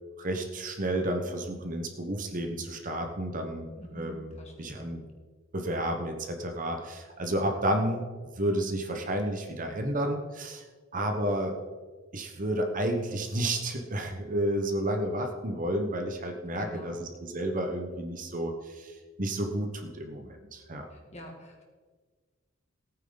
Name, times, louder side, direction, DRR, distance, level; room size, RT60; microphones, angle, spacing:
voice 1, 0.2-3.7 3.9-4.3 4.6-5.0 5.5-10.6 10.9-11.6 12.1-20.9, right 1 dB, 40° right, 4 dB, 1.3 m, -31 dB
voice 2, 3.8-4.9 16.5-17.1 20.9-21.6, equal, 35° left, 0 dB, 2.4 m, -46 dB
17.5 x 9.1 x 4.0 m, 1.4 s
head